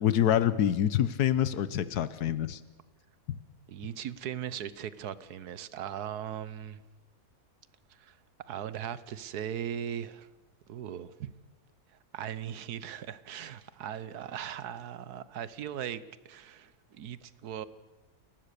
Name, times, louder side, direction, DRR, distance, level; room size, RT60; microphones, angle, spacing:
voice 1, 0.0-2.6, left 10 dB, 85° left, 16 dB, 1.4 m, -26 dB
voice 2, 3.7-6.8 7.9-8.2 8.5-10.3 10.7-11.3 12.1-17.7, right 9 dB, 85° right, 16 dB, 1.4 m, -39 dB
29.5 x 15.5 x 6.8 m, 1.2 s
omnidirectional pair, 1.6 m